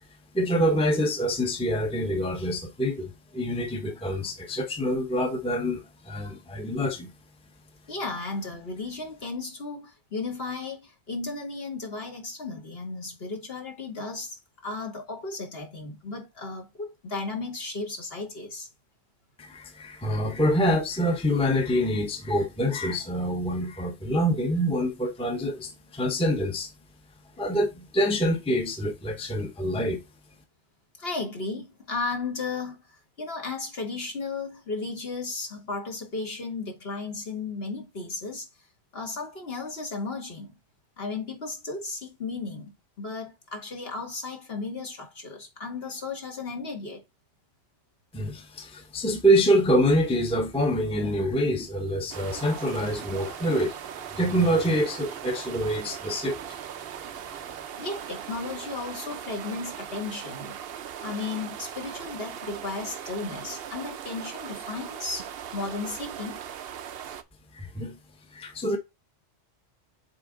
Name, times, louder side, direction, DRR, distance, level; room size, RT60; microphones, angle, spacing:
voice 1, 0.3-7.1 19.4-26.7 27.4-30.0 48.1-56.4 67.5-67.9 68.3-68.8, equal, 5° left, 0.9 m, -26 dB
voice 2, 7.9-14.4 14.6-18.7 31.0-38.5 38.9-40.6 41.0-47.0 57.8-60.6 61.0-66.4, left 3 dB, 55° left, 1.8 m, -35 dB
sound 1, 52.1-67.2, right 9 dB, 60° right, 0.8 m, -39 dB
7.8 x 3.7 x 3.7 m
omnidirectional pair, 1.3 m